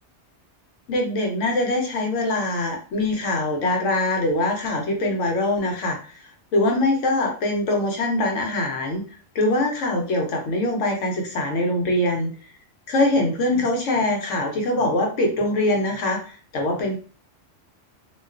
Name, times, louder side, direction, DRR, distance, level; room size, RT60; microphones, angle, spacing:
voice 1, 0.9-9.0 9.3-12.3 12.9-17.0, left 2 dB, 90° left, 2 dB, 1.1 m, -23 dB
2.4 x 2.3 x 2.3 m, 0.38 s
omnidirectional pair, 1.2 m